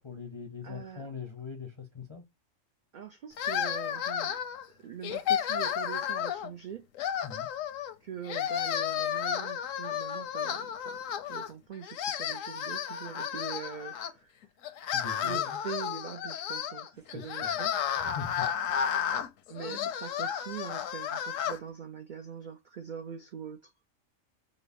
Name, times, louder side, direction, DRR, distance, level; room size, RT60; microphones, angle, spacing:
voice 1, 0.0-2.2 7.2-7.5 14.9-15.6 17.1-17.6 18.0-18.5, left 6 dB, 35° left, 0.4 m, -41 dB
voice 2, 0.6-1.1 2.9-4.4 4.7-6.9 8.0-14.5 15.2-17.7 19.5-23.7, right 8 dB, 70° right, 0.4 m, -43 dB
sound 1, 3.4-4.6 5.0-6.5 7.0-7.9 8.2-11.5 11.8-14.1 14.6-21.6, left 9 dB, 80° left, 1.0 m, -32 dB
5.2 x 2.1 x 2.4 m
omnidirectional pair, 1.3 m